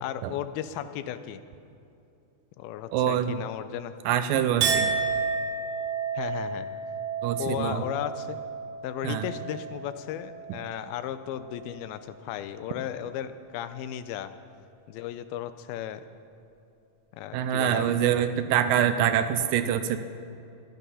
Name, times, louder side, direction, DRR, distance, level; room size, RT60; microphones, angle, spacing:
voice 1, 0.0-1.4 2.6-3.9 6.2-6.7 7.4-8.4 8.8-14.3 14.9-16.0 17.1-17.9, left 11 dB, 90° left, 12 dB, 2.5 m, -35 dB
voice 2, 2.9-3.4 4.1-4.9 7.2-7.8 9.0-9.3 17.3-20.0, right 10 dB, 80° right, 10 dB, 2.2 m, -25 dB
Chink clink, 4.6-11.2 11.5-12.1, right 5 dB, 65° right, 1.9 m, -32 dB
16.0 x 12.0 x 5.6 m, 2.7 s
omnidirectional pair, 4.2 m